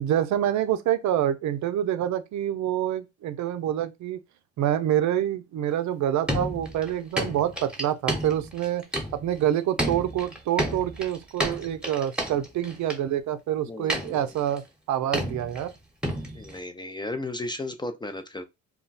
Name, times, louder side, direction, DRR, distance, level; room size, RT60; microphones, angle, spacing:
voice 1, 0.0-4.2 4.6-8.9 9.1-14.6 14.9-15.7, right 11 dB, 70° right, 0.5 m, -26 dB
sound 1, 6.3-9.4 9.8-13.0 13.9-14.6 15.1-15.7 16.0-16.6, right 1 dB, 5° right, 0.9 m, -31 dB
voice 2, 13.7-14.3 16.3-18.5, left 2 dB, 15° left, 0.3 m, -35 dB
2.2 x 2.1 x 3.9 m
cardioid pair, 90°, 30 cm